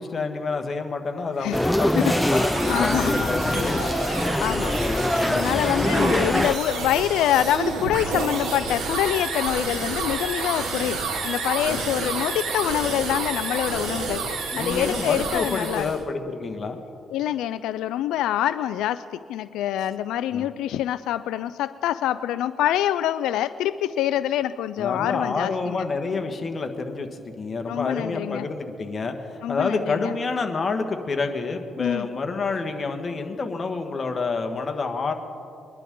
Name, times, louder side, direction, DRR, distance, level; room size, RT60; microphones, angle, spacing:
voice 1, 0.0-4.1 4.8-5.1 5.5-5.7 11.7-11.8 14.5-16.8 20.3-20.5 24.8-35.1, left 4 dB, 35° left, 5 dB, 1.5 m, -28 dB
voice 2, 1.4-2.2 2.7-3.9 4.4-4.8 5.3-15.9 17.1-25.9 27.7-28.5 29.4-30.1 31.8-32.1, left 12 dB, 90° left, 13 dB, 0.3 m, -26 dB
sound 1, 1.4-16.0, right 4 dB, 85° right, 3.1 m, -30 dB
sound 2, 1.5-6.6, left 1 dB, 5° left, 0.4 m, -23 dB
23.0 x 11.5 x 3.8 m, 2.5 s
cardioid pair, 90°, 0 cm